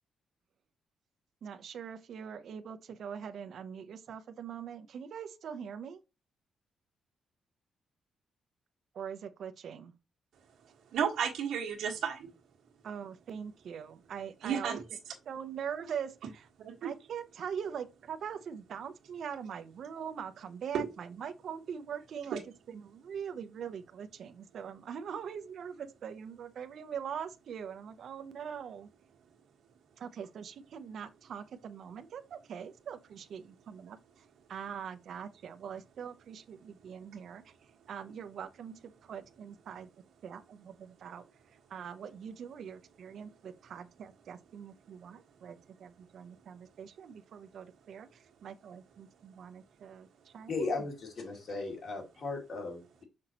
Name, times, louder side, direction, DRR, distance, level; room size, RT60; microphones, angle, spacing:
voice 1, 1.4-6.0 8.9-9.9 12.8-14.8 15.3-16.2 16.8-22.4 22.7-28.9 30.0-37.5 37.9-39.9 40.2-41.2 41.7-50.9, right 7 dB, 55° right, 0.7 m, -42 dB
voice 2, 10.9-12.3 14.4-15.1 16.6-16.9 20.7-20.9 22.3-22.4, right 7 dB, 90° right, 1.6 m, -33 dB
voice 3, 50.5-53.0, left 3 dB, 45° left, 2.5 m, -36 dB
6.2 x 6.0 x 3.0 m
wide cardioid pair, 180°, 0 cm